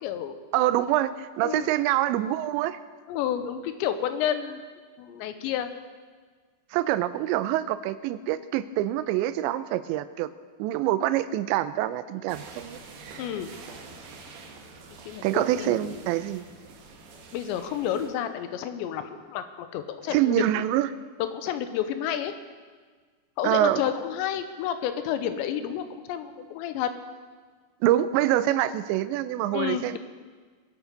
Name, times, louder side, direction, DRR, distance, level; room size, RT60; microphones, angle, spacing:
voice 1, 0.0-0.4 1.4-1.7 3.1-4.6 5.0-5.7 13.2-13.5 15.1-15.9 17.3-20.6 21.2-22.3 23.4-26.9 29.5-30.0, left 10 dB, 85° left, 9 dB, 3.1 m, -30 dB
voice 2, 0.5-2.8 6.7-10.3 10.6-12.8 15.2-16.5 20.1-20.9 23.4-23.8 27.8-30.0, right 13 dB, 90° right, 13 dB, 2.9 m, -25 dB
sound 1, 12.3-18.1, right 4 dB, 70° right, 3.3 m, -46 dB
21.5 x 8.2 x 5.2 m, 1.5 s
omnidirectional pair, 5.1 m